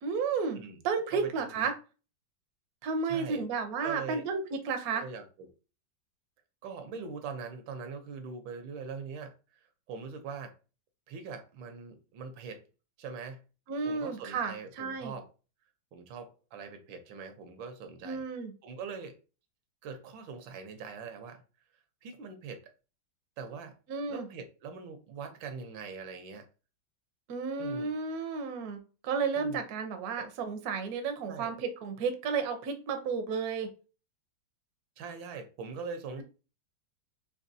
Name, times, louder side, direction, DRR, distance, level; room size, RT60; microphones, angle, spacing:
voice 1, 0.0-0.6 0.8-1.7 2.8-5.0 13.7-15.1 18.0-18.5 23.9-24.3 27.3-33.7, right 5 dB, 60° right, 1.0 m, -32 dB
voice 2, 1.1-1.7 3.0-3.5 3.8-4.2 4.9-5.5 6.6-10.5 11.1-12.6 13.0-13.4 13.8-15.3 15.9-18.2 18.6-19.2 19.8-21.4 22.0-22.7 23.4-23.8 24.1-26.4 27.6-27.9 29.4-29.6 30.2-30.3 31.3-31.5 35.0-36.2, right 5 dB, 80° right, 1.5 m, -42 dB
5.2 x 3.0 x 2.6 m
omnidirectional pair, 2.1 m